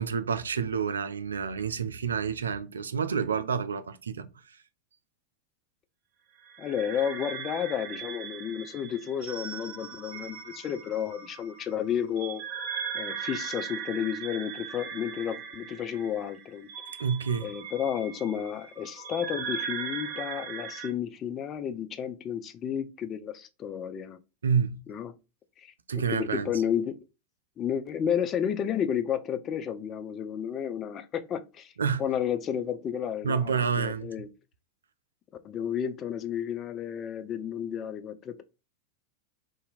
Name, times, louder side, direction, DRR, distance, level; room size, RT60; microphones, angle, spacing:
voice 1, 0.0-4.6 17.0-17.5 24.4-24.8 25.9-26.5 31.8-32.0 33.2-34.1, right 6 dB, 70° right, 0.3 m, -29 dB
sound 1, 6.4-20.9, right 7 dB, 40° right, 0.7 m, -39 dB
voice 2, 6.6-12.4 12.9-16.7 17.4-24.2 24.9-25.1 25.6-25.7 26.1-27.0 27.6-31.7 32.0-34.3 35.4-38.4, left 9 dB, 30° left, 0.4 m, -32 dB
2.7 x 2.5 x 4.0 m
figure-of-eight pair, 90°, 0 cm